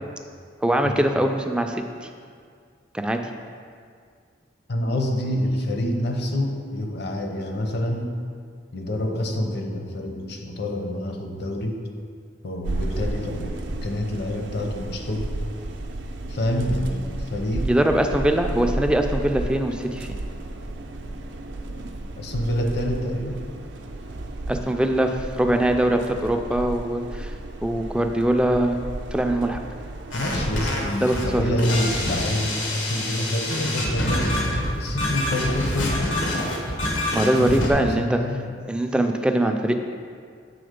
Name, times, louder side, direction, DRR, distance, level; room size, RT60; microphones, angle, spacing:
voice 1, 0.6-2.1 2.9-3.2 17.7-20.1 24.5-27.3 27.6-28.8 29.1-29.6 31.0-31.4 37.1-38.2 38.7-39.7, right 1 dB, 5° right, 4 dB, 0.3 m, -22 dB
voice 2, 4.7-8.2 8.7-11.8 12.4-15.4 16.3-17.7 21.7-23.4 30.1-36.5 37.0-38.5, left 1 dB, 60° left, 3 dB, 0.7 m, -27 dB
sound 1, 12.6-30.7, right 2 dB, 70° right, 0.5 m, -33 dB
sound 2, 30.1-37.7, left 1 dB, 90° left, 1.1 m, -26 dB
7.7 x 3.5 x 5.1 m, 2.1 s
head